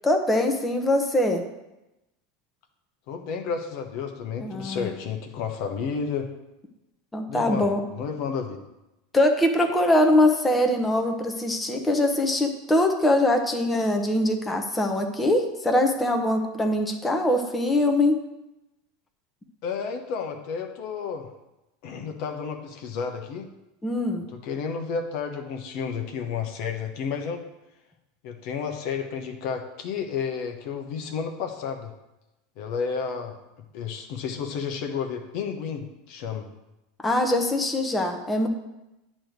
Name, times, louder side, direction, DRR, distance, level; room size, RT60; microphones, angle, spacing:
voice 1, 0.0-1.4 4.4-4.9 7.1-7.8 9.1-18.2 23.8-24.2 37.0-38.5, left 1 dB, 10° left, 3 dB, 1.0 m, -22 dB
voice 2, 3.1-6.3 7.3-8.6 19.6-21.3 21.8-23.5 24.3-27.4 28.2-31.9 32.6-33.3 33.7-36.5, left 6 dB, 60° left, 4 dB, 0.9 m, -31 dB
8.9 x 3.1 x 6.5 m, 0.95 s
hypercardioid pair, 95°, 0 cm